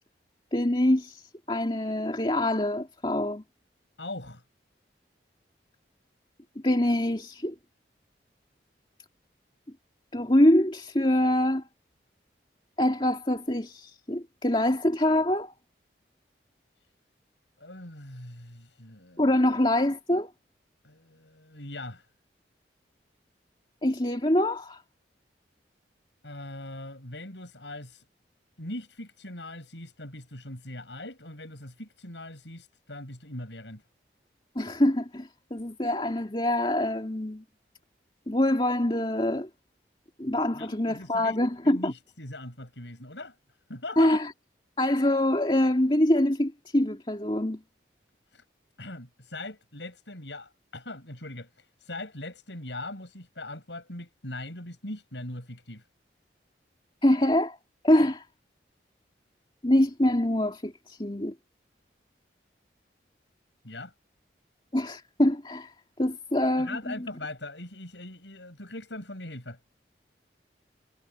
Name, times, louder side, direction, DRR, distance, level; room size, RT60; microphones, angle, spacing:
voice 1, 0.5-3.4 6.6-7.5 10.1-11.7 12.8-15.5 19.2-20.3 23.8-24.8 34.6-37.4 38.3-39.5 40.2-41.9 44.0-44.3 44.8-47.6 57.0-57.6 57.8-58.2 59.6-61.3 64.7-65.7 66.0-66.9, left 1 dB, 25° left, 2.6 m, -25 dB
voice 2, 4.0-4.4 17.6-19.3 20.8-22.1 26.2-28.0 28.6-33.8 40.5-41.4 41.6-43.3 43.7-44.2 48.3-48.4 48.8-55.8 63.6-63.9 66.6-69.6, left 2 dB, 80° left, 8.0 m, -41 dB
head